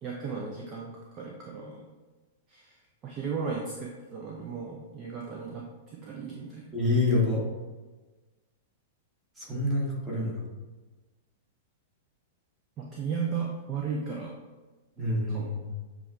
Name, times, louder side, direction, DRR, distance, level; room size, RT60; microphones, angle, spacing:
voice 1, 0.0-1.9 2.5-6.8 12.8-14.3 15.3-15.6, right 5 dB, 30° right, -2 dB, 0.5 m, -35 dB
voice 2, 6.7-7.4 9.4-10.4 15.0-15.7, left 2 dB, 10° right, -4 dB, 1.3 m, -27 dB
6.9 x 2.4 x 2.5 m, 1.3 s
figure-of-eight pair, 100°, 0 cm